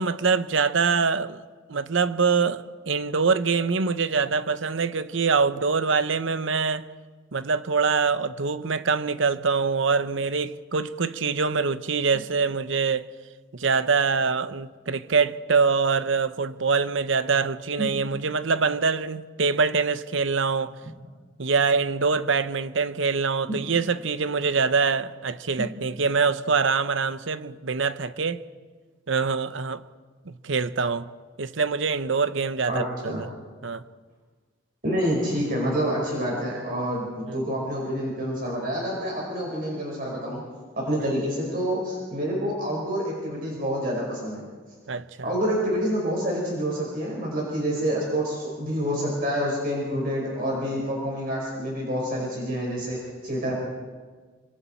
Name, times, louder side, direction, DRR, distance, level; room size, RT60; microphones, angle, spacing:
voice 1, 0.0-1.4 1.7-6.8 7.3-13.1 13.5-20.8 21.4-28.4 29.1-29.8 30.3-31.1 31.4-33.3 33.6-33.8 37.3-37.5 41.0-41.1 44.9-45.3, right 5 dB, 75° right, 0.8 m, -24 dB
voice 2, 32.7-33.2 34.8-40.4 40.8-44.4 45.2-53.5, equal, 45° right, 5.2 m, -27 dB
26.0 x 26.0 x 4.5 m
head